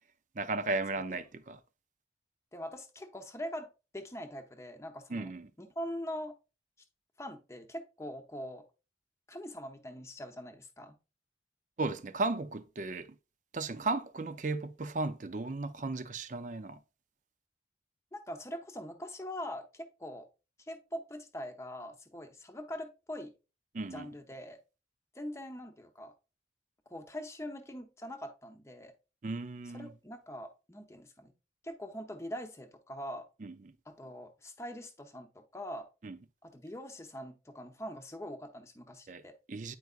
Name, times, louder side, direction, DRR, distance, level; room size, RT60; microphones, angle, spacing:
voice 1, 0.4-1.6 5.1-5.5 11.8-13.1 13.5-16.8 23.7-24.1 29.2-29.9 33.4-33.5 36.0-36.2 39.1-39.2 39.5-39.7, right 3 dB, 45° right, 0.5 m, -35 dB
voice 2, 2.5-3.7 3.9-5.3 5.6-6.4 7.2-8.6 9.3-11.0 18.1-20.3 20.7-23.3 23.9-24.6 25.1-26.1 26.9-28.9 29.7-31.3 31.6-33.3 33.9-35.9 36.4-39.3, equal, 15° left, 0.8 m, -43 dB
9.3 x 4.6 x 2.5 m
head